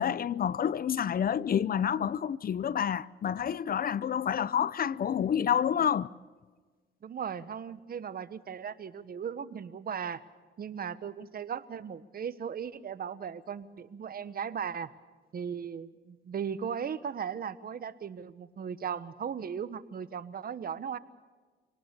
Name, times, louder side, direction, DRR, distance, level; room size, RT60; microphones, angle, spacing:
voice 1, 0.0-6.1, left 8 dB, 45° left, 0.7 m, -28 dB
voice 2, 7.0-10.2 10.6-14.9 15.3-21.0, right 7 dB, 50° right, 1.2 m, -37 dB
26.5 x 19.0 x 6.8 m
cardioid pair, 90°, 20 cm